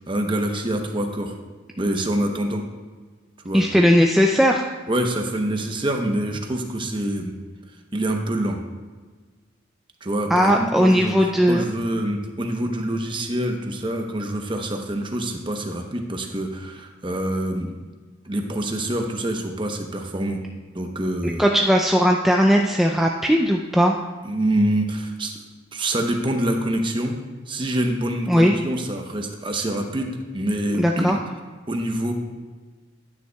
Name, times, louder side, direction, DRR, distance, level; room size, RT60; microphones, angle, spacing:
voice 1, 0.1-1.4 1.8-2.6 3.4-3.6 4.9-7.3 7.9-8.6 10.0-11.1 11.5-17.7 18.3-20.4 20.7-21.4 24.2-25.4 25.7-27.2 27.5-31.2 31.7-32.1, right 1 dB, 25° right, 3 dB, 0.8 m, -26 dB
voice 2, 3.5-4.6 10.3-11.6 21.4-24.0 28.3-28.5 30.8-31.2, equal, ahead, 1 dB, 0.3 m, -18 dB
10.5 x 9.4 x 2.3 m, 1.4 s
head